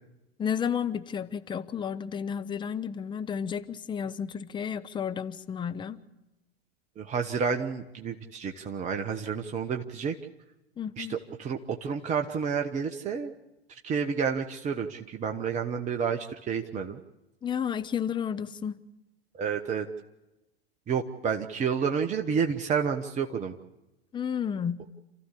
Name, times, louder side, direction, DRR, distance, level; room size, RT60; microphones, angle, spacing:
voice 1, 0.4-6.0 10.8-11.2 17.4-18.8 24.1-24.8, left 7 dB, 15° left, 11 dB, 0.9 m, -32 dB
voice 2, 7.0-10.1 11.0-13.3 13.8-17.0 19.4-19.9 20.9-23.5, right 6 dB, 25° right, 5 dB, 1.2 m, -30 dB
28.5 x 14.5 x 8.3 m, 0.99 s
figure-of-eight pair, 100°, 31 cm